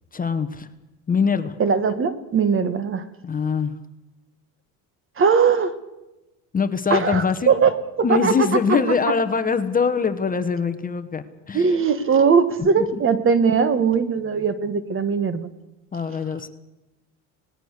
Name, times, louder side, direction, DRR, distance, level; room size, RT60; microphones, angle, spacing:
voice 1, 0.1-0.7 1.1-1.5 3.2-3.7 6.5-7.5 8.0-11.7 12.6-13.0 15.9-16.5, left 5 dB, 20° left, 9 dB, 1.2 m, -23 dB
voice 2, 1.6-3.0 5.2-5.7 6.9-8.8 11.5-15.5 16.1-16.2, right 5 dB, 30° right, 13 dB, 1.6 m, -20 dB
26.0 x 19.0 x 6.7 m, 1.0 s
cardioid pair, 135°, 39 cm